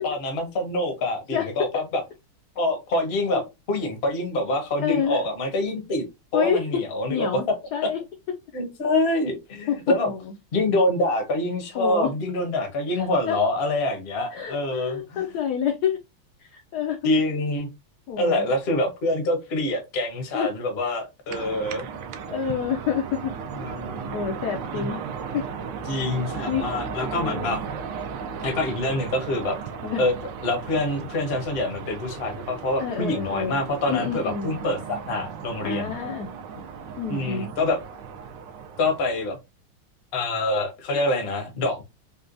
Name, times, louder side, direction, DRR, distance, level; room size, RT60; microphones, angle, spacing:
voice 1, 0.0-2.0 2.6-6.0 6.3-7.4 8.5-10.1 10.5-15.2 17.0-17.7 18.2-21.9 23.5-24.1 24.7-25.0 25.9-27.6 28.4-29.6 30.0-30.1 30.4-35.9 37.1-37.8 38.8-39.4 40.1-41.8, left 2 dB, 50° left, 4 dB, 0.8 m, -26 dB
voice 2, 4.8-5.2 6.3-6.8 7.1-7.5 7.7-8.0 9.7-9.8 10.0-10.3 11.7-12.1 12.9-13.4 14.3-16.0 16.4-17.2 18.1-18.5 20.3-20.5 22.3-23.3 24.1-25.0 25.3-25.4 26.5-26.6 27.1-27.6 29.8-30.0 32.8-33.6 33.9-34.5 35.6-36.3 37.0-37.5, left 8 dB, 75° left, 4 dB, 0.9 m, -28 dB
sound 1, 21.3-39.3, right 6 dB, 75° right, 1.1 m, -36 dB
4.2 x 2.2 x 2.5 m, 0.23 s
omnidirectional pair, 2.3 m